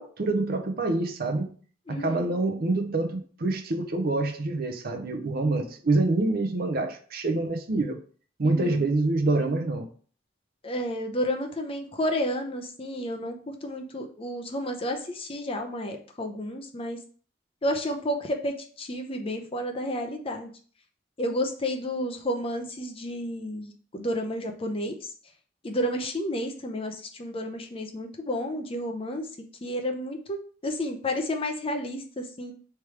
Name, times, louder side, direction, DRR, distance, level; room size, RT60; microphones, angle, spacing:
voice 1, 0.0-1.5 1.9-8.0 8.4-9.9, right 2 dB, 50° right, 0.6 m, -26 dB
voice 2, 1.9-2.3 8.4-8.9 10.6-17.0 17.6-20.5 21.2-25.1 25.6-29.3 29.6-30.4 30.6-32.5, left 1 dB, 30° left, 0.6 m, -31 dB
3.3 x 3.1 x 4.7 m
head